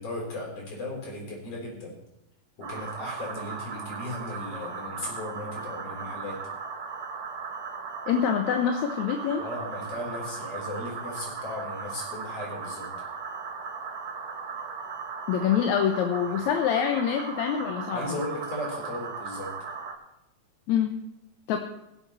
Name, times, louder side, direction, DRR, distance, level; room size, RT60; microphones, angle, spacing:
voice 1, 0.0-1.9 2.6-6.4 9.4-12.9 17.9-19.5, left 1 dB, 50° left, -1 dB, 4.7 m, -36 dB
sound 1, 2.6-19.9, right 5 dB, 60° right, 2.7 m, -37 dB
voice 2, 8.1-9.4 15.3-18.2 20.7-20.9 21.5-21.6, left 8 dB, 70° left, 4 dB, 2.1 m, -25 dB
22.5 x 7.9 x 4.2 m, 0.87 s
omnidirectional pair, 3.6 m